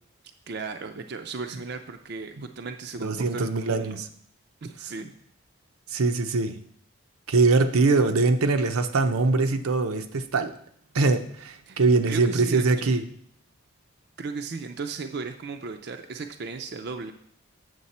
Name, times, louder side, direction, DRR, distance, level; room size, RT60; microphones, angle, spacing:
voice 1, 0.5-4.0 4.6-5.1 11.7-11.8 12.1-12.9 14.2-17.1, right 4 dB, 50° right, 6 dB, 0.5 m, -36 dB
voice 2, 3.0-4.1 5.9-6.6 7.3-10.5 10.9-13.0, right 3 dB, 85° right, 7 dB, 0.7 m, -22 dB
8.0 x 6.7 x 4.2 m, 0.65 s
head